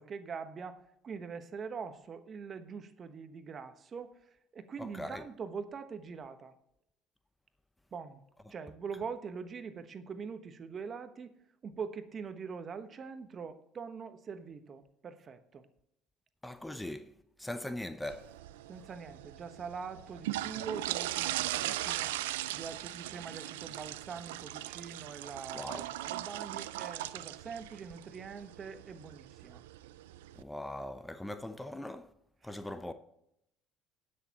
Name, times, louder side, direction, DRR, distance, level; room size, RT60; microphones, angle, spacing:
voice 1, 0.0-4.1 4.5-6.5 7.9-8.2 8.5-11.3 11.6-15.6 18.7-22.2 22.5-29.6 32.4-32.5, right 5 dB, 40° right, 1.1 m, -43 dB
voice 2, 4.8-5.3 8.5-8.6 16.4-17.1 17.4-18.3 25.5-25.8 30.4-32.1 32.4-32.9, left 1 dB, 10° left, 0.7 m, -40 dB
sound 1, 18.0-30.4, right 15 dB, 85° right, 0.3 m, -39 dB
18.5 x 6.5 x 2.9 m
hypercardioid pair, 70°, 0 cm